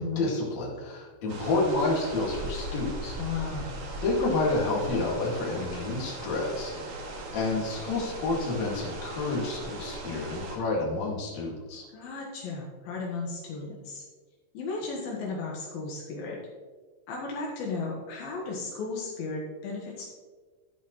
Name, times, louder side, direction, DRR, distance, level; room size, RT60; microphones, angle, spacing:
voice 1, 0.0-3.2 4.0-11.9, left 2 dB, 50° left, -3 dB, 3.1 m, -29 dB
sound 1, 1.3-10.6, right 1 dB, 65° right, 3.0 m, -38 dB
voice 2, 3.2-3.9 11.9-14.0 14.5-16.4 17.1-20.1, left 4 dB, 75° left, -3 dB, 3.1 m, -35 dB
11.5 x 9.1 x 3.1 m, 1.5 s
omnidirectional pair, 4.3 m